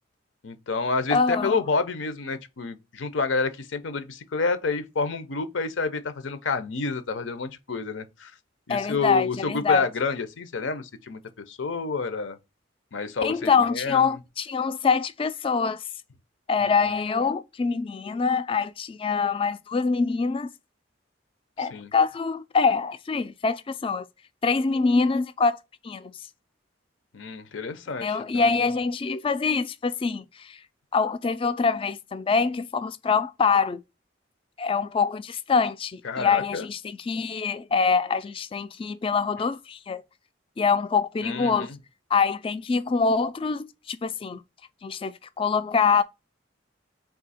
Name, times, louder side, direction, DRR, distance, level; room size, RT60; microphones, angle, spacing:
voice 1, 0.4-8.3 8.7-11.2 11.5-12.4 12.9-14.2 16.6-16.9 21.6-21.9 27.1-28.7 36.0-36.7 39.4-39.5 41.2-41.8, left 4 dB, 75° left, 0.7 m, -29 dB
voice 2, 1.1-1.6 8.7-9.9 13.2-15.8 16.5-20.5 21.6-24.1 24.4-25.6 25.8-26.1 28.0-30.6 30.9-33.8 34.6-40.0 40.6-41.7 42.1-44.4 44.8-46.0, left 5 dB, 30° left, 0.3 m, -24 dB
3.6 x 2.7 x 4.1 m
head